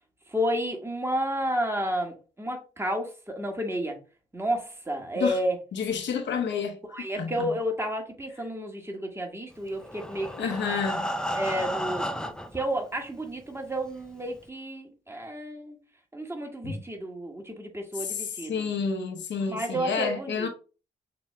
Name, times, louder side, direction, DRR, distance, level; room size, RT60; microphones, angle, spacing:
voice 1, 0.3-4.0 4.3-5.6 6.9-10.5 11.3-15.8 16.1-18.7 19.5-20.5, equal, 15° right, 1.5 m, -31 dB
voice 2, 5.7-6.8 7.2-7.5 10.4-11.0 16.6-16.8 18.0-20.5, left 6 dB, 65° left, 0.8 m, -29 dB
Breathing, 9.7-12.7 13.4-13.5 13.9-14.0 14.4-14.5, equal, 5° left, 0.5 m, -32 dB
6.7 x 2.7 x 2.2 m
supercardioid pair, 45°, 20 cm